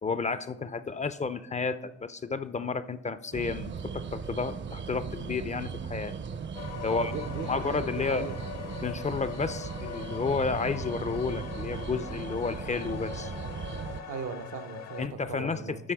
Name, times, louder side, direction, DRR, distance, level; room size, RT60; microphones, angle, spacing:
voice 1, 0.0-6.1 6.8-7.1 7.5-8.3 8.8-13.3 15.0-15.9, left 4 dB, 25° left, 14 dB, 0.4 m, -31 dB
sound 1, 3.3-14.0, right 6 dB, 40° right, 0.6 m, -38 dB
sound 2, 6.5-15.1, left 8 dB, 60° left, 0.7 m, -42 dB
voice 2, 6.9-8.4 14.1-15.8, right 6 dB, 75° right, 10 dB, 0.8 m, -38 dB
11.5 x 4.5 x 3.4 m, 0.97 s
cardioid pair, 90°, 30 cm